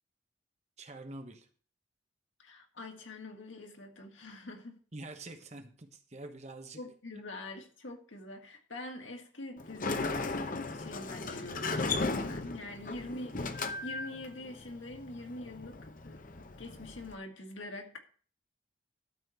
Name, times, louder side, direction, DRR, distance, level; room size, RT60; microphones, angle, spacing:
voice 1, 0.8-1.5 4.9-6.8 7.1-7.2 12.4-12.5, right 2 dB, 35° right, 1.2 m, -46 dB
voice 2, 2.4-4.8 6.8-16.2 16.6-18.0, left 2 dB, 85° left, 2.2 m, -45 dB
Sliding door, 9.6-17.1, left 3 dB, 45° left, 0.8 m, -36 dB
12.5 x 4.4 x 7.9 m
head